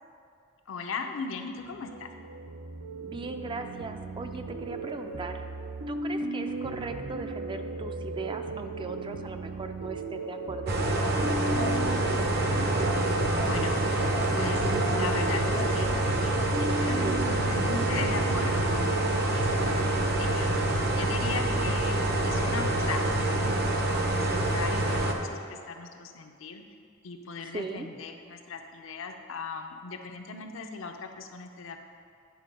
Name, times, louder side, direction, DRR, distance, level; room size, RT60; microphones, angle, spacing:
voice 1, 0.7-2.1 13.4-13.8 14.3-16.0 16.2-17.0 17.3-19.7 20.2-23.6 24.1-26.6 27.0-31.8, left 4 dB, 70° left, 5 dB, 0.6 m, -38 dB
sound 1, 1.5-19.9, right 3 dB, 85° right, 0.6 m, -36 dB
voice 2, 3.0-5.4 5.9-11.3 17.0-17.3 19.6-20.1 27.4-27.9, right 3 dB, 25° right, 6 dB, 0.3 m, -38 dB
sound 2, 10.7-25.1, right 1 dB, 50° right, 0.7 m, -26 dB
9.3 x 4.4 x 5.2 m, 2.3 s
head